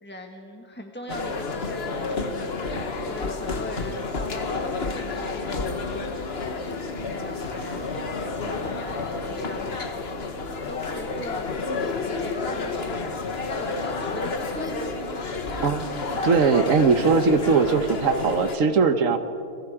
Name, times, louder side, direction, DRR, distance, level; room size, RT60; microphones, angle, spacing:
voice 1, 0.0-2.5 3.0-7.8 8.2-10.0 10.7-11.5 12.0-14.9, left 1 dB, 5° left, 2 dB, 1.0 m, -40 dB
sound 1, 1.1-18.6, left 3 dB, 35° left, 1.3 m, -30 dB
sound 2, 2.0-12.8, left 7 dB, 75° left, 4.4 m, -47 dB
voice 2, 15.6-19.2, right 5 dB, 50° right, 9 dB, 1.3 m, -20 dB
29.5 x 23.0 x 5.0 m, 2.7 s
omnidirectional pair, 2.1 m